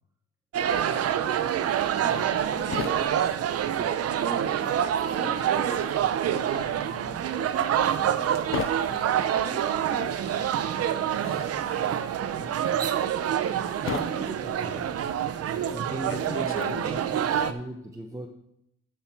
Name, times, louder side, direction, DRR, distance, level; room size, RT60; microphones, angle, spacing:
sound 1, 0.5-17.5, right 9 dB, 55° right, 0.5 m, -27 dB
sound 2, 1.9-4.4 4.7-17.3, left 10 dB, 45° left, 0.4 m, -39 dB
voice 1, 2.0-3.3 3.7-4.6 5.0-5.8 6.2-12.5, right 2 dB, 40° right, -1 dB, 2.2 m, -41 dB
sound 3, 2.2-16.0, left 1 dB, 70° left, 2.6 m, -52 dB
voice 2, 13.5-15.1 15.7-18.3, right 1 dB, 10° right, 2 dB, 0.6 m, -39 dB
13.0 x 5.8 x 4.4 m, 0.79 s
wide cardioid pair, 175°, 29 cm